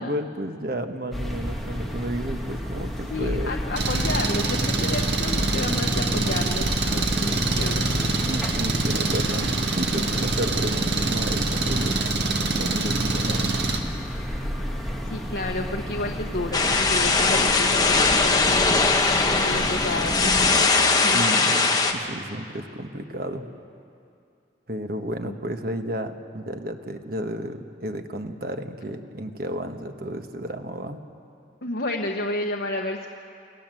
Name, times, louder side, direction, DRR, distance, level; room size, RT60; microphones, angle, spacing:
voice 1, 0.0-3.5 8.2-12.0 12.5-13.7 21.1-23.5 24.7-31.0, right 1 dB, 50° right, 6 dB, 1.4 m, -32 dB
leaves in tree rustling, 1.1-20.5, equal, ahead, 2.1 m, -31 dB
voice 2, 3.1-7.9 15.0-18.8 19.3-21.2 25.3-25.4 31.6-33.1, left 2 dB, 60° left, 1 dB, 1.2 m, -31 dB
Engine, 3.8-13.8, right 3 dB, 65° right, 2.1 m, -25 dB
sound 1, 16.5-21.9, left 3 dB, 20° left, 1.3 m, -20 dB
28.5 x 18.0 x 7.7 m, 2.5 s
head